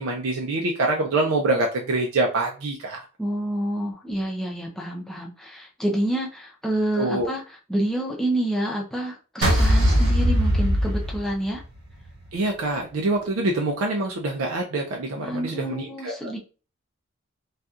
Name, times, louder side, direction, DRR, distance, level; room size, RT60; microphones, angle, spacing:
voice 1, 0.0-3.0 7.0-7.3 12.3-16.3, right 2 dB, 85° right, 0 dB, 0.5 m, -25 dB
voice 2, 3.2-11.6 15.2-16.4, right 1 dB, ahead, -2 dB, 0.6 m, -28 dB
sound 1, 9.4-11.8, equal, 65° right, 1.3 m, -20 dB
4.1 x 2.3 x 2.4 m, 0.36 s
head